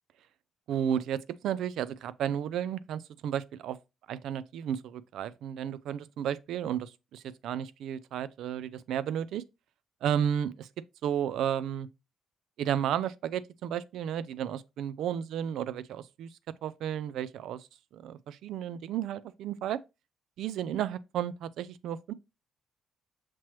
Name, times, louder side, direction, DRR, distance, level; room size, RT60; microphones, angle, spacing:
voice 1, 0.7-3.8 4.1-9.4 10.0-10.7 11.0-11.9 12.6-16.3 16.6-17.7 17.9-19.8 20.4-22.1, right 9 dB, 80° right, 0.3 m, -33 dB
5.9 x 3.0 x 3.0 m
cardioid pair, 90°, 0 cm